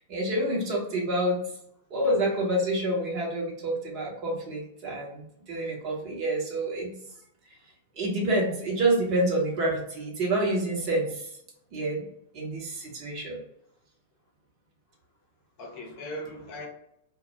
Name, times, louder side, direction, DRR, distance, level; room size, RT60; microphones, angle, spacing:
voice 1, 0.0-1.4 1.9-6.9 8.0-11.3 11.7-12.1 12.3-13.4, right 1 dB, 40° right, -2 dB, 0.9 m, -28 dB
voice 2, 2.0-2.5 15.6-16.7, equal, 45° left, 0 dB, 0.7 m, -40 dB
2.2 x 2.1 x 3.0 m, 0.76 s
figure-of-eight pair, 95°, 0 cm